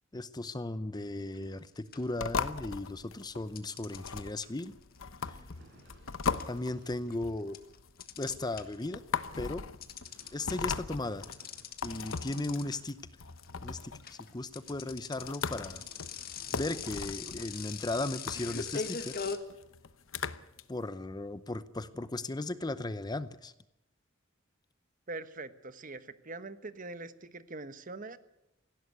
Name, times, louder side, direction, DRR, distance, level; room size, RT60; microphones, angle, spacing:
voice 1, 0.1-4.7 5.3-5.4 6.5-7.6 8.2-9.0 9.4-9.6 10.3-11.3 11.8-13.0 13.6-15.8 16.5-19.2 20.7-23.5, left 2 dB, 20° left, 14 dB, 0.7 m, -36 dB
sound 1, 1.3-1.6 1.9-2.9 3.6-8.9 9.2-19.4, left 6 dB, 50° left, 1.7 m, -41 dB
sound 2, 2.2-20.6, left 5 dB, 85° left, 0.9 m, -39 dB
sound 3, 4.9-7.2 9.7-12.4 15.2-17.1, right 2 dB, 60° right, 5.5 m, -60 dB
voice 2, 25.1-28.2, right 3 dB, 40° right, 12 dB, 1.2 m, -43 dB
18.0 x 16.0 x 9.5 m, 0.86 s
head